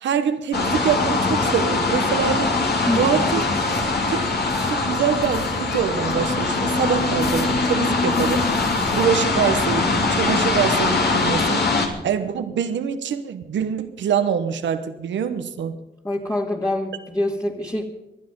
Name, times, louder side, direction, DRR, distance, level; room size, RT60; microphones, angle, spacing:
voice 1, 0.0-3.4 4.1-8.5 8.9-15.8, right 8 dB, 90° right, 10 dB, 1.1 m, -25 dB
sound 1, 0.5-11.9, left 3 dB, 65° left, 2.9 m, -22 dB
voice 2, 2.9-3.4 16.0-17.8, left 1 dB, 20° left, -2 dB, 2.2 m, -25 dB
20.5 x 11.5 x 5.4 m, 0.94 s
cardioid pair, 60°, 18 cm